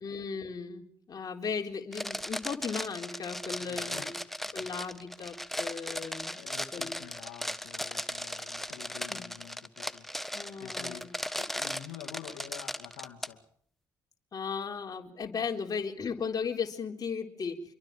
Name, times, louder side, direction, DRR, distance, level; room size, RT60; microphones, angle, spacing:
voice 1, 0.0-4.1 4.5-6.4 6.7-6.9 9.1-9.3 10.3-11.1 14.3-17.6, left 5 dB, 40° left, 2 dB, 4.0 m, -36 dB
sound 1, 1.9-13.3, equal, ahead, 1.4 m, -37 dB
voice 2, 3.6-4.1 4.5-4.7 6.3-10.1 10.6-13.4, left 10 dB, 75° left, 3 dB, 2.5 m, -48 dB
26.5 x 23.5 x 5.0 m, 0.64 s
hypercardioid pair, 50°, 9 cm